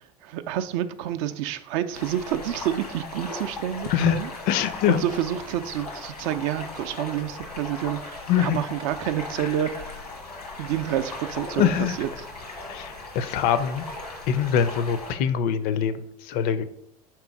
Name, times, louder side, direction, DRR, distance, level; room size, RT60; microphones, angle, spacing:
voice 1, 0.2-4.3 4.9-9.8 10.6-12.3, right 11 dB, 60° right, 10 dB, 0.4 m, -28 dB
sound 1, 1.9-15.1, left 2 dB, 90° left, 1.1 m, -38 dB
voice 2, 4.5-5.0 8.3-8.6 9.4-9.5 11.6-12.0 12.7-13.9 14.3-15.9 16.3-16.7, left 9 dB, 50° left, 13 dB, 0.4 m, -23 dB
3.6 x 3.0 x 4.7 m, 0.73 s
figure-of-eight pair, 75°, 19 cm